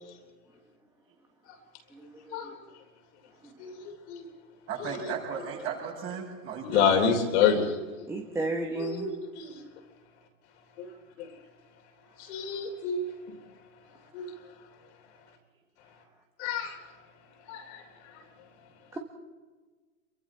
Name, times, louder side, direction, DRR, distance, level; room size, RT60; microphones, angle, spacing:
voice 1, 1.9-2.5 8.1-9.1 10.8-10.9 18.9-19.0, right 2 dB, 5° right, 2 dB, 1.5 m, -34 dB
voice 2, 3.6-4.2 4.8-5.1 6.6-8.0 8.8-9.6 10.8-10.9 11.2-11.3 12.2-13.0 14.1-14.3 16.4-16.8 17.5-18.2, left 7 dB, 50° left, 3 dB, 3.5 m, -28 dB
voice 3, 4.7-6.9, right 7 dB, 30° right, -2 dB, 7.4 m, -35 dB
28.0 x 23.5 x 4.3 m, 1.4 s
hypercardioid pair, 130°, 44 cm